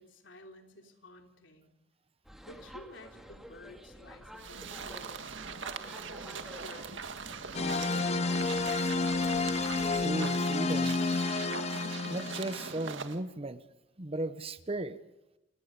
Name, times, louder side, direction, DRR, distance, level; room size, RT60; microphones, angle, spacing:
voice 1, 0.0-1.7 2.4-5.4 6.3-7.1, left 1 dB, 75° left, 4 dB, 3.5 m, -53 dB
sound 1, 2.2-10.1, equal, ahead, 2.6 m, -50 dB
sound 2, 4.4-13.2, right 5 dB, 80° right, 1.9 m, -41 dB
sound 3, 7.5-12.7, left 3 dB, 35° left, 0.8 m, -30 dB
voice 2, 9.9-11.0 12.1-13.6 14.0-15.0, right 2 dB, 30° right, 13 dB, 1.0 m, -36 dB
29.0 x 19.0 x 5.5 m, 0.94 s
head